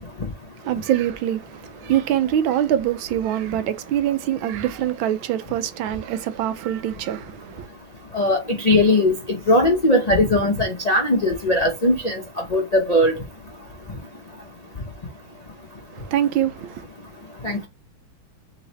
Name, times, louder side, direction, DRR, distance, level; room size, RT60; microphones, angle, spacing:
voice 1, 0.6-7.7 15.9-16.8, right 11 dB, 80° right, 1.4 m, -24 dB
voice 2, 8.1-9.1 9.5-12.2 12.5-13.1 17.4-17.7, left 1 dB, 50° left, 0.4 m, -19 dB
4.0 x 3.1 x 4.0 m
omnidirectional pair, 2.2 m